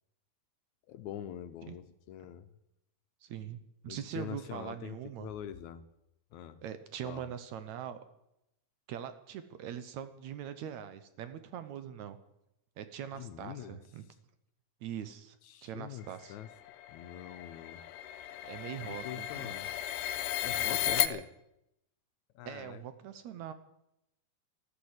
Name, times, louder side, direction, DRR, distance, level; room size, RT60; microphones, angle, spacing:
voice 1, 0.9-2.5 3.9-5.8 6.3-6.6 7.0-7.3 13.1-13.8 15.4-16.5 16.9-17.9 18.8-19.7 20.4-21.3 22.4-22.8, left 11 dB, 75° left, 11 dB, 1.9 m, -44 dB
voice 2, 3.2-5.3 6.6-8.0 8.9-12.2 12.8-14.1 14.8-15.4 15.6-16.4 18.4-19.5 20.5-21.2 22.5-23.5, right 9 dB, 70° right, 11 dB, 1.9 m, -42 dB
sound 1, 16.3-21.1, left 12 dB, 90° left, 2.4 m, -34 dB
13.5 x 12.0 x 8.0 m, 0.84 s
omnidirectional pair, 3.7 m